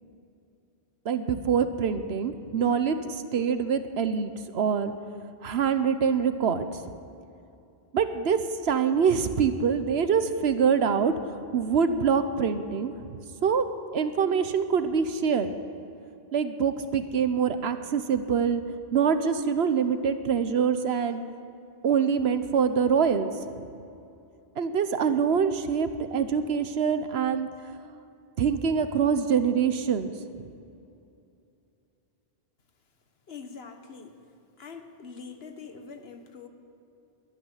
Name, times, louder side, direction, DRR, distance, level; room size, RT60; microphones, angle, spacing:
voice 1, 1.0-4.9 5.4-6.8 7.9-13.6 13.9-15.5 16.3-18.6 18.9-21.2 21.8-23.3 24.6-27.5 28.4-30.1, right 6 dB, 75° right, 10 dB, 1.1 m, -25 dB
voice 2, 33.3-34.2 34.6-36.5, left 5 dB, 70° left, 6 dB, 1.4 m, -44 dB
12.0 x 12.0 x 9.9 m, 2.6 s
omnidirectional pair, 1.1 m